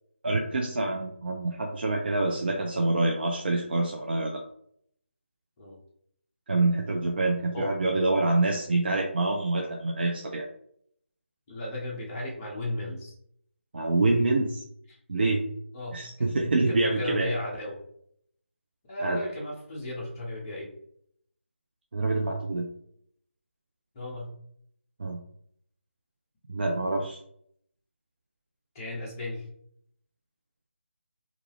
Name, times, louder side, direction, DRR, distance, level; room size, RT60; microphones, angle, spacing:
voice 1, 0.2-4.4 6.5-10.5 13.7-14.6 15.1-15.4 15.9-17.3 19.0-19.2 21.9-22.7 25.0-25.2 26.5-27.2, right 2 dB, 50° right, 1 dB, 0.4 m, -26 dB
voice 2, 11.5-13.1 15.7-16.3 16.7-17.8 18.9-20.7 23.9-24.3 28.7-29.4, left 1 dB, 20° left, -5 dB, 0.6 m, -35 dB
2.3 x 2.2 x 3.1 m, 0.69 s
figure-of-eight pair, 165°, 7 cm